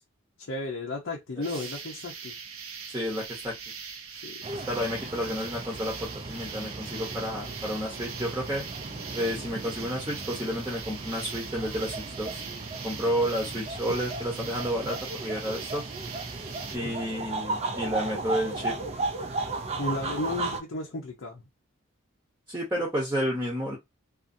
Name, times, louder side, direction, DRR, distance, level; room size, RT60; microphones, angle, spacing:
voice 1, 0.4-2.3 4.1-4.5 19.8-21.4, left 2 dB, 65° left, 0.6 m, -34 dB
sound 1, 1.4-16.8, right 6 dB, 85° right, 0.6 m, -41 dB
voice 2, 2.9-3.5 4.5-8.6 9.1-12.4 12.8-15.8 16.7-18.7 22.5-23.8, equal, 15° right, 0.8 m, -31 dB
sound 2, 4.4-20.6, right 3 dB, 30° right, 0.4 m, -36 dB
2.5 x 2.5 x 2.6 m
head